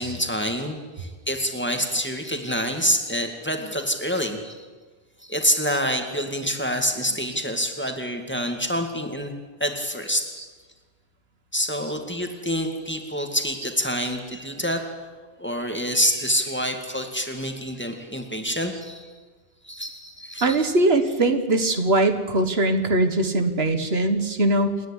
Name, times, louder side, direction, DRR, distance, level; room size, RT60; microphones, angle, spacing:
voice 1, 0.0-4.7 5.2-9.3 9.6-10.3 11.5-14.8 15.4-19.1 19.6-20.6, equal, 10° left, 3 dB, 2.2 m, -27 dB
voice 2, 20.4-24.8, right 2 dB, 80° right, 7 dB, 1.8 m, -21 dB
28.5 x 10.0 x 10.0 m, 1.3 s
omnidirectional pair, 1.0 m